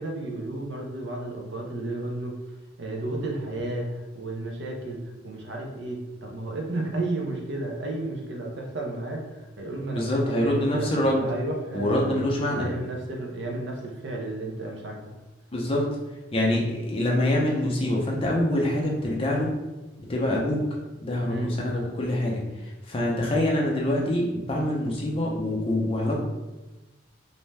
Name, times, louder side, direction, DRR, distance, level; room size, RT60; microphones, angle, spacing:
voice 1, 0.0-2.4 2.8-15.0 21.3-21.5, right 2 dB, 70° right, 0 dB, 0.6 m, -33 dB
voice 2, 9.9-11.2 11.7-12.6 15.5-15.9 16.3-19.5 20.0-20.6 21.0-26.2, left 1 dB, 30° left, -2 dB, 0.5 m, -25 dB
2.6 x 2.1 x 3.2 m, 1.1 s
head